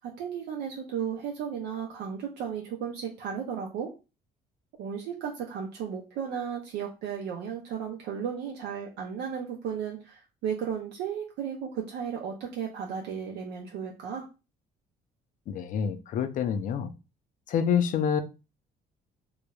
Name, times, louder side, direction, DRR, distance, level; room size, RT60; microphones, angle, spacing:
voice 1, 0.0-3.9 4.8-14.3, right 7 dB, 85° right, 1 dB, 0.5 m, -34 dB
voice 2, 15.5-16.9 17.5-18.2, left 7 dB, 50° left, 10 dB, 0.4 m, -27 dB
3.0 x 2.0 x 2.3 m, 0.29 s
cardioid pair, 110°, 17 cm